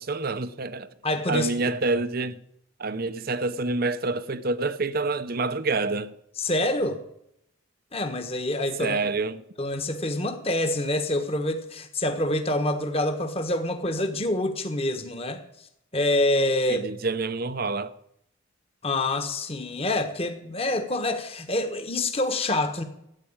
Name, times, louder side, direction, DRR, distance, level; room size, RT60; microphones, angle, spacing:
voice 1, 0.0-0.9 1.3-2.4 2.8-6.1 8.8-9.4 16.7-17.9, right 3 dB, 45° right, 0.7 m, -27 dB
voice 2, 1.0-1.5 6.4-7.0 7.9-9.0 9.6-15.4 15.9-16.9 18.8-22.8, left 1 dB, 25° left, 1.4 m, -26 dB
14.0 x 9.2 x 8.8 m
head